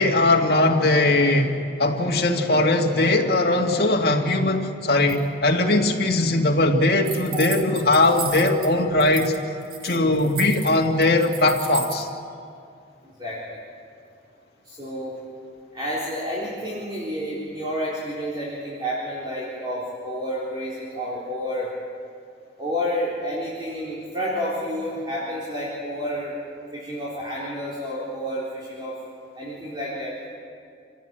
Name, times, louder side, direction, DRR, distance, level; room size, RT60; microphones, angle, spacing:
voice 1, 0.0-9.3 9.8-12.1, left 2 dB, 60° left, 1 dB, 2.1 m, -20 dB
sound 1, 7.0-8.7 9.0-9.4 9.6-12.0, right 5 dB, 50° right, 2.5 m, -34 dB
voice 2, 14.6-15.2 15.7-21.7 22.6-26.4 26.7-29.0 29.4-30.1, equal, 25° right, -7 dB, 3.9 m, -30 dB
27.5 x 16.5 x 9.0 m, 2.4 s
head